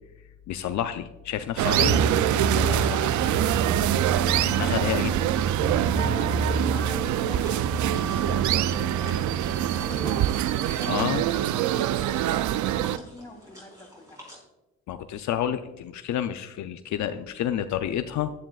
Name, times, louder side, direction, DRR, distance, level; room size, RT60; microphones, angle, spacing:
voice 1, 0.5-2.0 2.5-3.6 4.4-5.2 10.9-11.2 14.9-18.3, left 10 dB, 70° left, 9 dB, 0.5 m, -30 dB
sound 1, 1.6-13.0, right 13 dB, 75° right, 0.5 m, -25 dB
sound 2, 1.8-10.1, right 3 dB, 45° right, 1.1 m, -29 dB
voice 2, 5.7-10.1 10.5-11.2 11.5-14.2, left 1 dB, 10° left, -1 dB, 3.1 m, -44 dB
sound 3, 7.0-14.4, equal, 10° right, 4.2 m, -50 dB
15.0 x 10.5 x 2.4 m, 1.1 s
cardioid pair, 90°, 30 cm